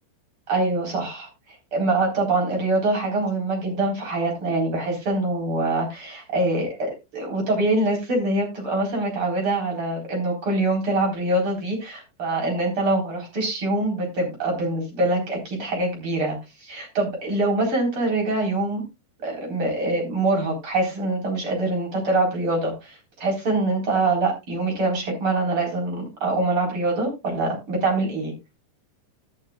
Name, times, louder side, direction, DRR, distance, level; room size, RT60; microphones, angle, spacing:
voice 1, 0.5-1.3 1.7-18.8 19.2-28.3, right 2 dB, 30° right, 1 dB, 4.5 m, -24 dB
19.5 x 6.5 x 2.4 m, 0.24 s
omnidirectional pair, 5.6 m